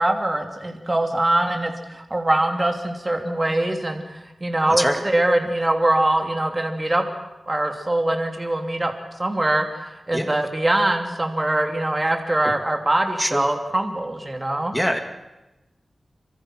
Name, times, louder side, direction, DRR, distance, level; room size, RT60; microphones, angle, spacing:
voice 1, 0.0-7.0 7.5-8.9 9.2-14.7, right 1 dB, 25° right, 4 dB, 2.7 m, -23 dB
voice 2, 4.8-5.0 10.1-10.3 13.2-13.4 14.7-15.0, equal, ahead, 5 dB, 2.5 m, -22 dB
27.0 x 25.0 x 6.3 m, 1.0 s
wide cardioid pair, 95°, 0 cm